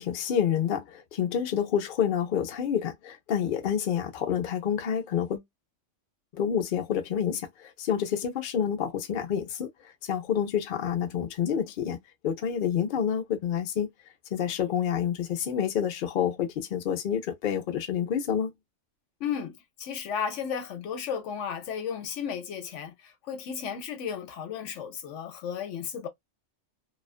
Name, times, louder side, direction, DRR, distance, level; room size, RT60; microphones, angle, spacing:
voice 1, 0.0-5.4 6.3-9.7 10.0-12.0 12.2-13.9 14.3-18.5, left 8 dB, 55° left, 0.6 m, -28 dB
voice 2, 19.2-26.1, left 7 dB, 70° left, 1.0 m, -34 dB
2.4 x 2.3 x 2.3 m
omnidirectional pair, 1.3 m